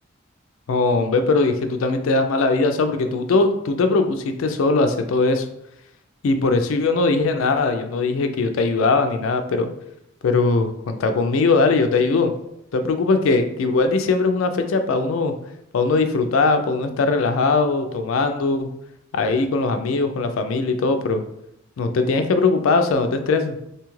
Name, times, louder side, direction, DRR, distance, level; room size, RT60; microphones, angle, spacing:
voice 1, 0.7-5.5 6.2-9.7 10.2-12.3 12.7-15.3 15.7-18.7 19.1-21.2 21.8-23.6, left 3 dB, 70° left, 7 dB, 0.4 m, -20 dB
2.7 x 2.3 x 3.0 m, 0.80 s
head